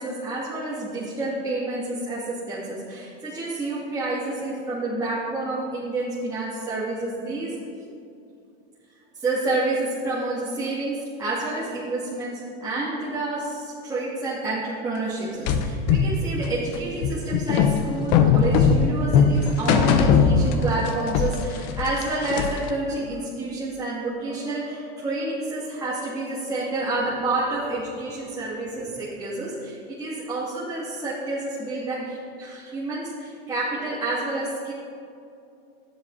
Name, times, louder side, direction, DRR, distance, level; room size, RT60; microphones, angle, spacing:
voice 1, 0.0-7.9 9.1-34.7, right 2 dB, 10° right, -10 dB, 2.7 m, -29 dB
sound 1, 15.5-20.9 21.1-22.7, left 6 dB, 55° left, 1.0 m, -20 dB
12.5 x 10.0 x 4.3 m, 2.6 s
supercardioid pair, 115°, 30 cm